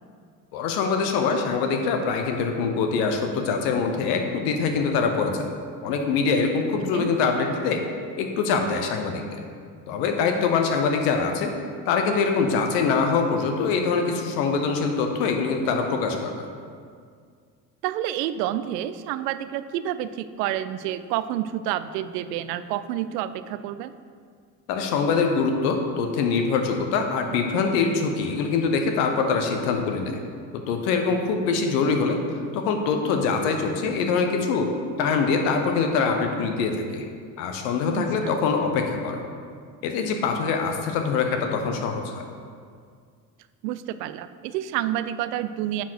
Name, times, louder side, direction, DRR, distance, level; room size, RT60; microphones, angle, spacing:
voice 1, 0.5-5.5 5.8-7.8 8.2-9.4 9.9-11.5 11.9-16.4 24.7-30.2 30.5-32.2 32.5-34.7 35.0-37.0 37.4-39.2 39.8-42.2, left 5 dB, 70° left, 4 dB, 1.1 m, -24 dB
voice 2, 17.8-23.9 38.0-38.4 43.6-45.8, right 12 dB, 75° right, 13 dB, 0.5 m, -29 dB
9.3 x 4.5 x 4.7 m, 2.1 s
hypercardioid pair, 65°, 50 cm